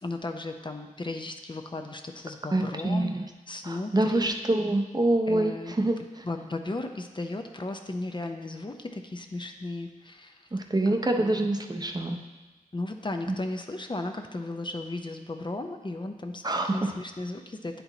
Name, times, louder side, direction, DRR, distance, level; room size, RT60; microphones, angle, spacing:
voice 1, 0.0-3.1 3.5-4.3 5.3-5.7 6.2-10.5 11.2-11.3 12.7-17.8, left 2 dB, 35° left, 5 dB, 0.5 m, -35 dB
voice 2, 2.5-3.3 3.6-6.2 10.5-12.2 13.3-13.4 16.4-16.9, right 2 dB, 30° right, 4 dB, 0.6 m, -26 dB
9.3 x 4.6 x 3.9 m, 1.2 s
wide cardioid pair, 70°, 14 cm